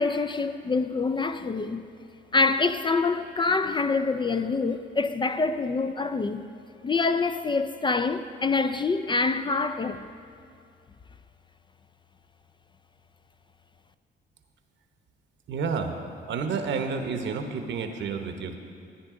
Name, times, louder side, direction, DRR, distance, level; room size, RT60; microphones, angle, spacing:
voice 1, 0.0-1.8 2.3-6.5 6.8-10.0, left 4 dB, 25° left, 0.4 m, -26 dB
voice 2, 15.5-16.0 16.3-18.6, right 5 dB, 65° right, 1.0 m, -30 dB
13.5 x 9.5 x 3.7 m
cardioid pair, 90°, 20 cm